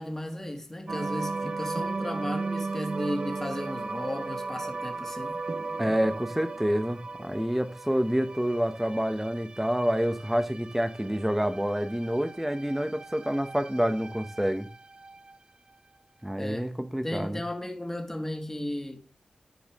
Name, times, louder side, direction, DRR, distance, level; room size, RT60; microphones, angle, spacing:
voice 1, 0.0-5.4 16.4-16.7 17.0-19.1, left 1 dB, 15° left, 1.9 m, -35 dB
sound 1, 0.9-15.4, right 3 dB, 40° right, 0.4 m, -36 dB
voice 2, 5.8-14.7 16.2-17.4, equal, 5° right, 1.0 m, -28 dB
13.5 x 4.8 x 3.6 m
wide cardioid pair, 110°, 2 cm